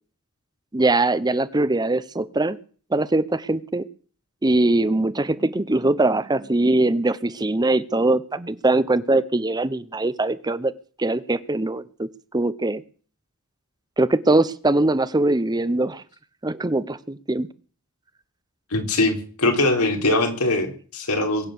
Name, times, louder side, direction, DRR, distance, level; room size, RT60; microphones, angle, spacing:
voice 1, 0.7-2.6 2.9-3.9 4.4-10.7 11.0-12.1 12.3-12.8 14.0-16.0 16.4-17.5, right 2 dB, 20° right, 16 dB, 0.7 m, -21 dB
voice 2, 18.7-21.5, left 2 dB, 90° left, 4 dB, 4.0 m, -22 dB
22.5 x 9.0 x 6.8 m, 0.43 s
head